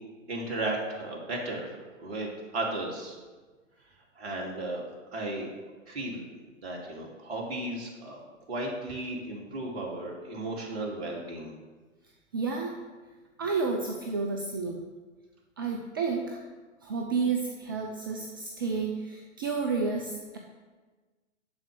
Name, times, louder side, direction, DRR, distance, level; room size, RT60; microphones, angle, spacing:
voice 1, 0.3-2.3 2.5-3.2 4.2-4.8 5.1-5.5 5.9-6.3 6.6-8.2 8.5-11.5, right 2 dB, 50° right, -1 dB, 2.5 m, -34 dB
voice 2, 12.3-12.8 13.4-14.8 15.6-16.4 16.8-20.4, right 4 dB, 20° right, 2 dB, 0.4 m, -31 dB
11.0 x 4.5 x 6.6 m, 1.3 s
figure-of-eight pair, 115°, 39 cm